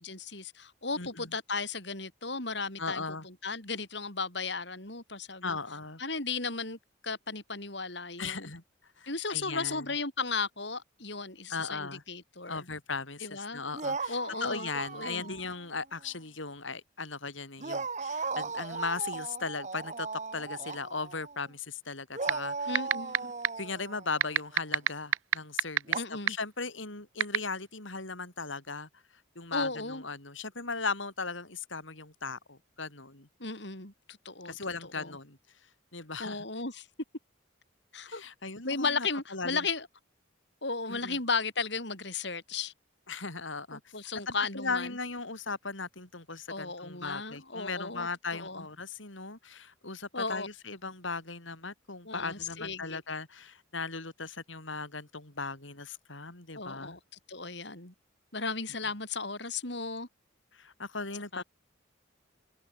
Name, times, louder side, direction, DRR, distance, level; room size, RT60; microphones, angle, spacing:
voice 1, 0.0-5.6 6.0-6.8 7.0-8.5 9.1-12.7 13.2-13.6 14.1-14.7 14.9-15.4 22.7-23.3 25.9-26.4 29.5-30.0 33.4-33.9 34.2-35.2 36.2-36.9 37.9-38.2 38.6-39.9 40.6-42.7 43.7-45.0 46.5-48.6 50.1-50.5 52.0-53.0 56.6-57.0 57.3-57.9 58.3-60.1 61.3-61.4, left 4 dB, 60° left, 6.0 m, -35 dB
voice 2, 1.0-1.3 2.8-3.3 5.4-6.0 8.2-8.6 9.0-9.9 11.5-12.0 12.5-20.1 20.3-22.8 23.6-28.9 29.4-33.3 34.4-35.4 35.9-36.5 38.1-39.6 40.9-41.2 43.1-43.9 44.3-57.0 60.5-61.4, left 4 dB, 75° left, 5.6 m, -38 dB
sound 1, 13.7-15.6 16.0-16.1 17.6-21.5 22.1-24.6 25.9-26.0, right 4 dB, 35° right, 1.6 m, -37 dB
sound 2, 22.3-22.4 22.8-23.2 23.4-23.5 24.2-25.9 26.3-26.4 27.2-27.4, right 9 dB, 85° right, 0.7 m, -21 dB
head